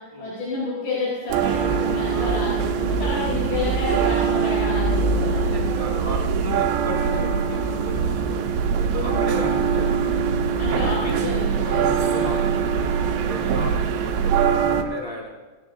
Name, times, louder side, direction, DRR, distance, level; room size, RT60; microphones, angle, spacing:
voice 1, 0.2-2.5 2.8-5.5 9.0-9.5 10.6-12.3 13.3-13.7, left 2 dB, 70° left, -8 dB, 6.5 m, -30 dB
sound 1, 1.3-14.8, right 6 dB, 85° right, 3.4 m, -22 dB
voice 2, 5.5-8.4 8.9-11.4 11.6-12.4 13.3-15.3, equal, 30° left, -4 dB, 0.6 m, -34 dB
20.5 x 18.5 x 2.7 m, 1.3 s
omnidirectional pair, 5.1 m